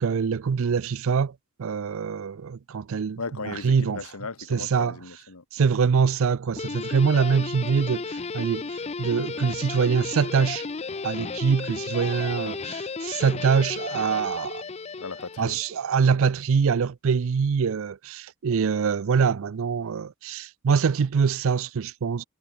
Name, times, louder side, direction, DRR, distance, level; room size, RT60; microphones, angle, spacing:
voice 1, 0.0-4.0 4.5-5.0 5.5-10.7 11.0-14.6 15.4-22.2, right 6 dB, 60° right, 0.4 m, -24 dB
voice 2, 3.2-5.7 15.0-15.6, left 4 dB, 70° left, 1.2 m, -37 dB
Guitar, 6.6-15.9, left 4 dB, 30° left, 0.5 m, -34 dB
head